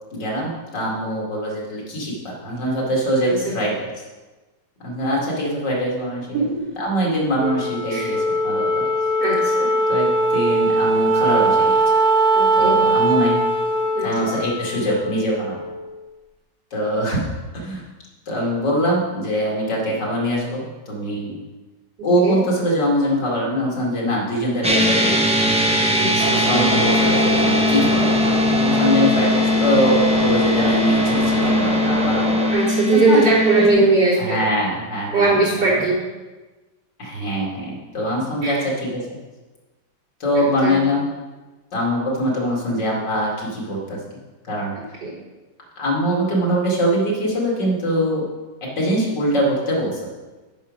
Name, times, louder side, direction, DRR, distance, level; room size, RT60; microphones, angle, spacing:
voice 1, 0.1-3.9 4.8-6.4 6.8-8.8 9.9-11.7 12.6-13.4 14.0-15.6 16.7-17.2 17.5-17.8 18.3-21.3 22.0-25.6 26.5-28.2 28.5-32.4 33.1-33.2 34.2-35.4 35.8-35.9 37.0-39.0 40.2-41.0 41.7-44.0 44.5-44.7 45.8-48.2 48.8-50.1, equal, 85° left, -3 dB, 2.9 m, -23 dB
voice 2, 3.2-3.5 6.3-6.7 7.9-8.2 9.2-9.7 12.3-12.8 13.9-14.1 22.2-22.4 25.9-26.5 32.5-34.4 35.1-36.0 38.4-38.6 40.4-40.7 44.8-45.1, right 3 dB, 85° right, -7 dB, 4.0 m, -20 dB
Wind instrument woodwind instrument, 7.4-16.0, right 2 dB, 40° right, 0.6 m, -20 dB
sound 1, 24.6-33.7, left 2 dB, 5° right, 0.6 m, -20 dB
sound 2, 26.2-32.5, right 3 dB, 65° right, 1.7 m, -24 dB
9.0 x 6.2 x 5.2 m, 1.2 s
omnidirectional pair, 1.9 m